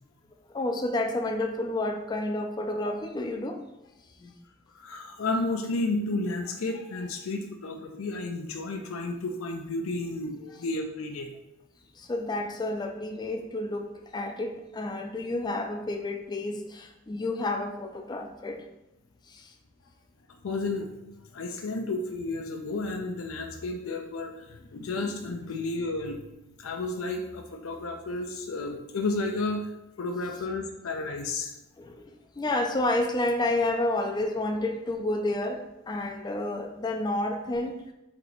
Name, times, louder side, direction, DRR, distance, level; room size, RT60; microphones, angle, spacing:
voice 1, 0.5-3.6 4.2-4.3 12.1-18.6 31.8-32.1 32.4-37.7, left 2 dB, 20° left, 4 dB, 0.3 m, -30 dB
voice 2, 4.7-11.3 20.4-20.9 21.3-26.2 26.6-29.7 30.0-31.5, left 2 dB, 85° left, 3 dB, 0.5 m, -32 dB
4.5 x 2.9 x 4.0 m, 0.94 s
head